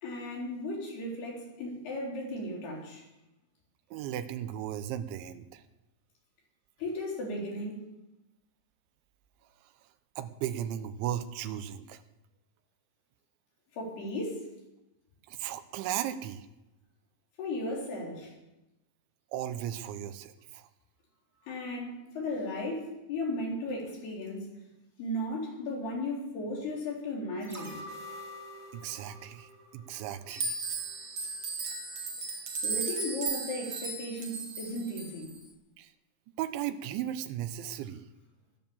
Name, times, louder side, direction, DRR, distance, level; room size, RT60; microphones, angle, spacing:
voice 1, 0.0-3.0 6.8-7.8 13.7-14.5 17.4-18.3 21.5-24.5 25.0-27.8 32.6-35.3, left 1 dB, 60° left, -2 dB, 5.9 m, -35 dB
voice 2, 3.9-5.6 10.2-12.0 15.3-16.5 19.3-20.7 28.7-30.6 35.8-35.9 36.4-38.0, right 11 dB, 85° right, 10 dB, 3.3 m, -36 dB
sound 1, 27.4-30.5 30.9-31.0, left 1 dB, 5° right, 1.4 m, -46 dB
sound 2, 30.3-35.3, right 4 dB, 45° right, 2.6 m, -35 dB
18.5 x 10.5 x 7.2 m, 0.95 s
omnidirectional pair, 5.2 m